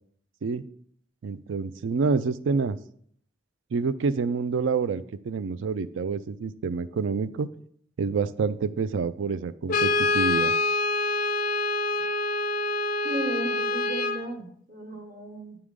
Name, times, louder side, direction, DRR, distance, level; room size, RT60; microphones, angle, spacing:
voice 1, 1.2-2.8 3.7-7.5 8.0-10.5, right 5 dB, 75° right, 15 dB, 0.4 m, -27 dB
Brass instrument, 9.7-14.3, left 2 dB, 45° left, 0.4 m, -26 dB
voice 2, 13.0-15.6, right 1 dB, 45° right, 3 dB, 1.2 m, -35 dB
8.7 x 4.9 x 3.7 m, 0.64 s
head